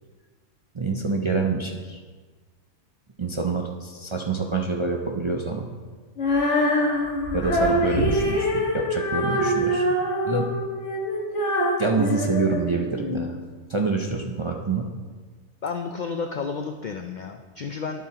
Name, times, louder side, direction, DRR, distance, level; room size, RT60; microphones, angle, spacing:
voice 1, 0.7-2.0 3.2-5.7 7.3-9.8 10.2-10.5 11.8-13.4 13.7-14.8, right 4 dB, 40° right, 0 dB, 0.4 m, -26 dB
Female singing, 6.2-13.2, equal, 60° left, 1.8 m, -24 dB
voice 2, 15.6-18.0, left 5 dB, 75° left, 5 dB, 0.4 m, -31 dB
12.0 x 7.3 x 2.9 m, 1.4 s
omnidirectional pair, 1.4 m